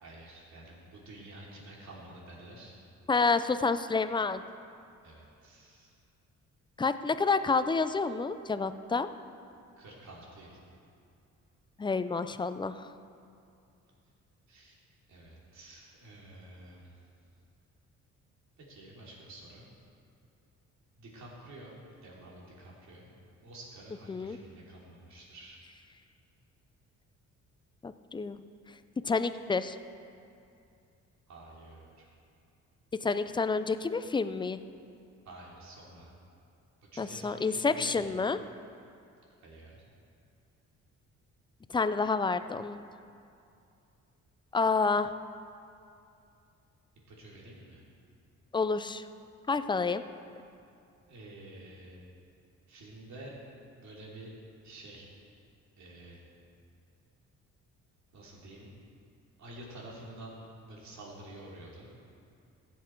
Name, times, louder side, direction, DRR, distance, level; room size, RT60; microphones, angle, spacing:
voice 1, 0.0-2.7 5.0-5.9 9.8-10.6 14.5-14.8 15.1-17.0 18.6-19.6 21.0-23.1 23.4-25.6 31.3-32.0 35.2-36.1 36.9-38.0 39.4-39.8 47.1-47.8 51.1-52.0 52.7-53.4 53.8-54.3 54.6-55.1 55.8-56.2 58.1-58.7 59.4-61.9, right 1 dB, 65° right, -4 dB, 3.1 m, -49 dB
voice 2, 3.1-4.4 6.8-9.1 11.8-12.9 24.1-24.4 27.8-28.4 29.0-29.8 33.0-34.6 37.0-38.4 41.7-42.8 44.5-45.1 48.5-49.1 49.5-50.0, left 4 dB, 15° left, 12 dB, 0.4 m, -29 dB
15.0 x 7.4 x 4.6 m, 2.5 s
cardioid pair, 90°, 30 cm